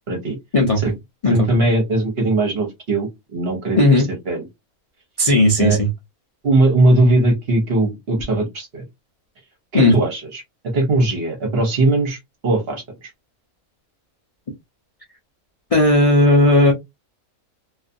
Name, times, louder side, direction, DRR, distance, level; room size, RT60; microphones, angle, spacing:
voice 1, 1.3-4.4 5.6-5.8 6.4-8.8 9.7-10.4 10.7-13.1, right 2 dB, 50° right, 0.9 m, -19 dB
voice 2, 5.2-5.9 9.7-10.0 15.7-16.7, left 2 dB, 60° left, 0.3 m, -14 dB
2.4 x 2.4 x 2.5 m
omnidirectional pair, 1.5 m